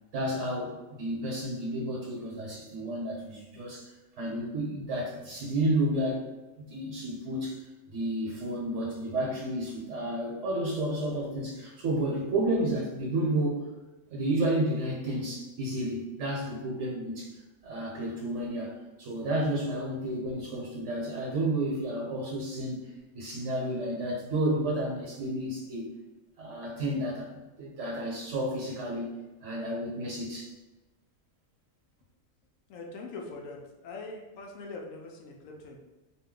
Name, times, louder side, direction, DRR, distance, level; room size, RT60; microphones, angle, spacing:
voice 1, 0.1-3.9 4.2-6.2 6.7-13.7 14.1-25.9 26.4-29.1 29.4-30.5, right 1 dB, 65° right, -3 dB, 1.1 m, -31 dB
voice 2, 32.7-35.8, left 3 dB, 80° left, 0 dB, 1.0 m, -42 dB
2.9 x 2.1 x 3.7 m, 1.1 s
omnidirectional pair, 1.4 m